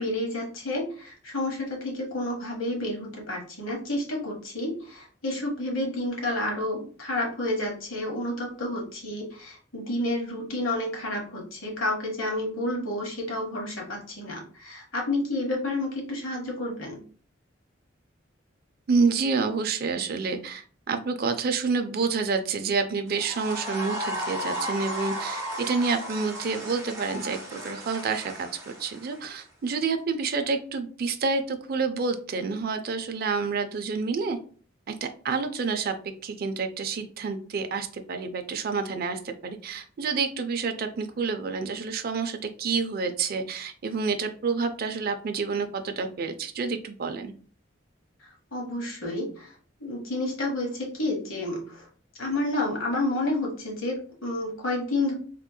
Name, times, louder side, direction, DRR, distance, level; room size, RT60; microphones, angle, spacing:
voice 1, 0.0-17.0 48.5-49.5 49.8-51.8 52.2-55.1, left 1 dB, 90° left, 0 dB, 1.2 m, -30 dB
voice 2, 18.9-34.4 34.9-35.9 36.2-47.3, right 4 dB, 50° right, 7 dB, 0.4 m, -28 dB
sound 1, 23.1-29.4, equal, 15° right, 1.2 m, -35 dB
3.5 x 2.9 x 2.2 m, 0.43 s
head